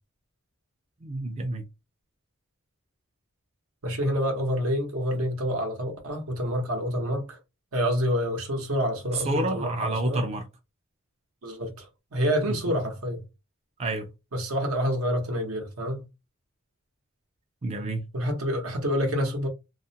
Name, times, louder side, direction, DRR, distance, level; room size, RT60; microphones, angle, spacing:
voice 1, 1.0-1.6 9.1-10.4 12.5-12.6 13.8-14.1 17.6-18.0, right 2 dB, 30° right, 0.4 m, -29 dB
voice 2, 3.8-7.4 7.7-10.2 11.4-13.2 14.3-16.0 18.1-19.5, equal, 80° right, 0.9 m, -27 dB
2.4 x 2.1 x 2.7 m
head